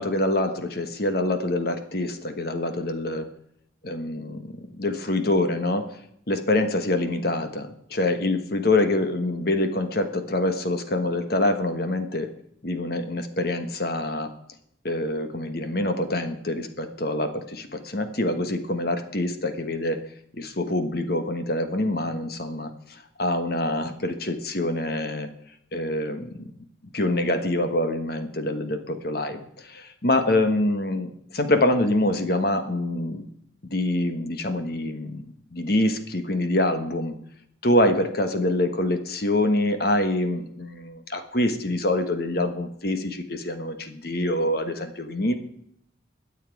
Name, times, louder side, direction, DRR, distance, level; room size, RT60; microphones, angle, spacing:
voice 1, 0.0-3.3 3.8-6.0 6.3-12.3 12.6-14.3 14.8-20.0 20.3-25.3 25.7-26.5 26.9-33.2 33.6-35.2 35.5-37.1 37.6-45.3, left 1 dB, 50° left, 7 dB, 1.2 m, -25 dB
22.0 x 7.5 x 4.7 m, 0.71 s
head